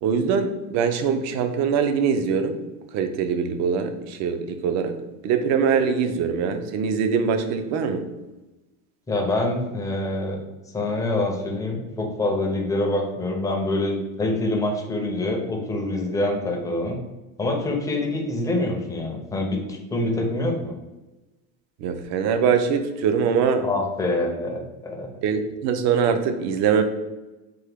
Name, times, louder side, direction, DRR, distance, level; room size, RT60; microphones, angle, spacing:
voice 1, 0.0-2.6 2.9-5.0 5.2-8.1 21.8-23.7 25.2-26.8, right 6 dB, 45° right, 8 dB, 0.5 m, -23 dB
voice 2, 9.1-10.4 10.7-17.0 17.4-20.7 23.6-25.1, left 2 dB, 10° left, 0 dB, 0.5 m, -25 dB
3.4 x 2.1 x 3.4 m, 1.1 s
supercardioid pair, 130°, 37 cm